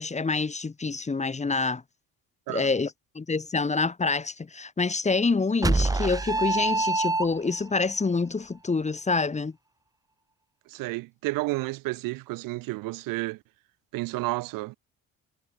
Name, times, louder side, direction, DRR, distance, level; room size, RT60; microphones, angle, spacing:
voice 1, 0.0-1.8 2.5-9.6, left 4 dB, 20° left, 1.9 m, -27 dB
sound 1, 5.6-7.7, right 3 dB, 10° right, 0.9 m, -25 dB
voice 2, 10.7-13.4 13.9-14.8, right 21 dB, 90° right, 4.9 m, -31 dB
cardioid pair, 100°, 33 cm